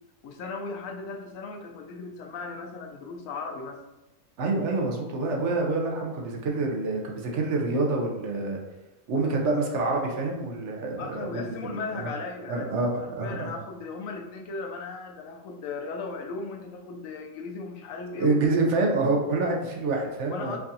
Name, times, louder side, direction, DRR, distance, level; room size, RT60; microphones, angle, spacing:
voice 1, 0.2-3.8 11.0-18.4 20.3-20.6, left 4 dB, 90° left, 2 dB, 1.0 m, -37 dB
voice 2, 4.4-8.6 9.1-12.1 12.5-13.5 18.2-20.6, right 3 dB, 70° right, 0 dB, 0.9 m, -27 dB
4.6 x 2.4 x 2.7 m, 1.0 s
omnidirectional pair, 1.4 m